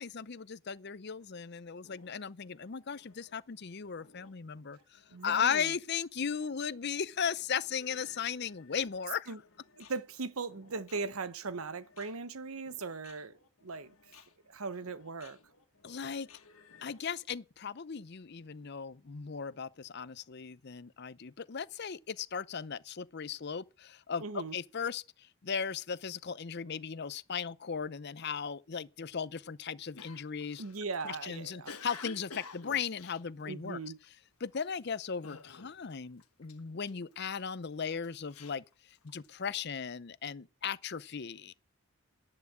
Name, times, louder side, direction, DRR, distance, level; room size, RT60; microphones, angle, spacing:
voice 1, 0.0-9.3 15.8-16.3 16.8-30.6 31.0-33.8 34.4-38.6 39.0-41.5, left 6 dB, 50° left, 0.6 m, -37 dB
sound 1, 1.2-17.1, left 5 dB, 75° left, 2.0 m, -62 dB
voice 2, 5.1-5.8 9.3-9.4 9.8-13.3 13.6-13.9 14.5-15.4 24.2-24.6 30.6-31.7 33.4-34.0, right 4 dB, 75° right, 0.9 m, -39 dB
Cough, 30.0-34.0 34.5-34.8 35.2-35.9 36.2-37.4 37.9-39.4, left 4 dB, 90° left, 1.4 m, -49 dB
11.0 x 11.0 x 7.3 m
head